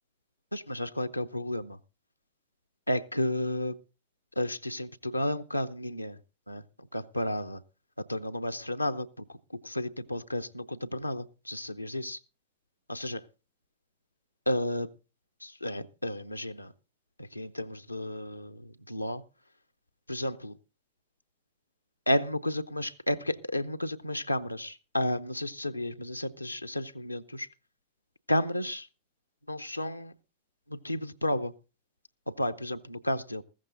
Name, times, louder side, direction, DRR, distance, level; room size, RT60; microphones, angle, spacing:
voice 1, 0.5-1.8 2.9-3.8 4.4-6.2 6.5-6.6 6.9-7.6 8.1-9.1 9.6-12.2 12.9-13.2 14.5-14.9 15.4-16.7 17.2-19.2 20.1-20.6 22.1-27.5 28.3-28.9 29.5-30.1 30.7-31.5 32.3-33.4, left 1 dB, 85° left, 0.7 m, -32 dB
15.0 x 14.0 x 3.8 m
figure-of-eight pair, 90°, 0 cm